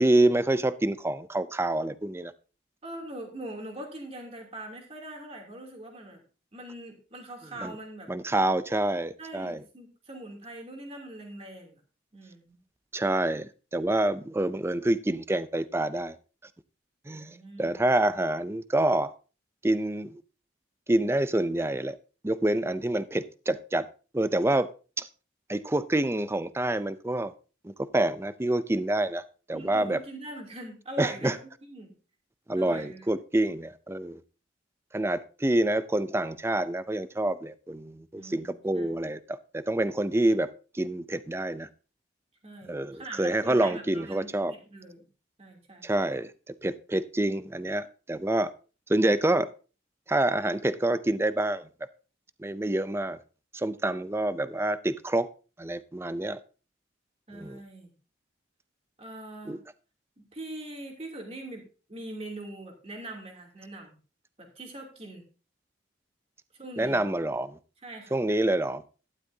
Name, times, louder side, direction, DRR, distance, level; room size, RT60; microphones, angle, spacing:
voice 1, 0.0-2.3 7.6-7.7 8.1-9.6 12.9-16.2 17.1-19.1 19.6-20.2 20.9-22.0 22.2-23.9 24.1-24.7 25.0-25.1 25.5-27.3 27.6-30.0 31.0-31.4 32.5-34.2 34.9-41.7 42.6-44.5 45.8-46.3 46.6-48.5 48.9-49.5 50.1-51.7 52.4-53.2 53.5-55.3 55.6-56.4 57.3-57.6 59.5-59.6 66.8-67.6 68.1-68.8, right 1 dB, 15° right, 14 dB, 0.5 m, -27 dB
voice 2, 2.8-6.2 6.5-8.1 9.2-11.8 12.1-12.6 17.1-17.8 29.5-31.4 31.7-31.9 32.5-33.1 38.1-39.0 42.4-45.0 45.4-45.9 57.3-57.9 59.0-59.6 60.2-64.0 64.5-65.2 66.5-67.0 67.8-68.1, right 1 dB, 30° right, 1 dB, 2.9 m, -42 dB
12.0 x 11.5 x 2.7 m, 0.35 s
head